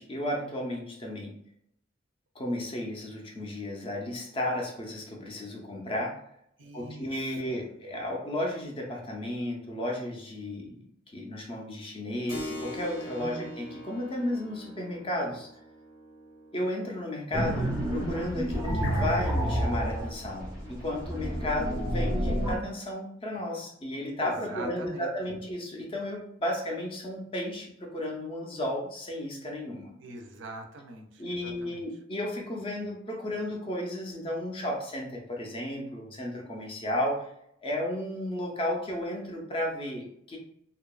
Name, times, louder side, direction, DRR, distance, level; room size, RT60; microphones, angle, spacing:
voice 1, 0.0-1.3 2.4-6.2 6.7-10.9 11.1-15.5 16.5-30.2 31.2-37.3 37.6-40.4, left 1 dB, 25° left, 0 dB, 0.5 m, -33 dB
voice 2, 6.6-7.8 13.2-13.5 24.2-25.1 30.0-31.8, right 2 dB, 60° right, 4 dB, 0.4 m, -44 dB
Keyboard (musical), 12.3-20.5, equal, 85° left, 1.1 m, -45 dB
sound 1, 17.3-22.6, equal, 15° right, 0.6 m, -29 dB
2.7 x 2.3 x 2.2 m, 0.73 s
head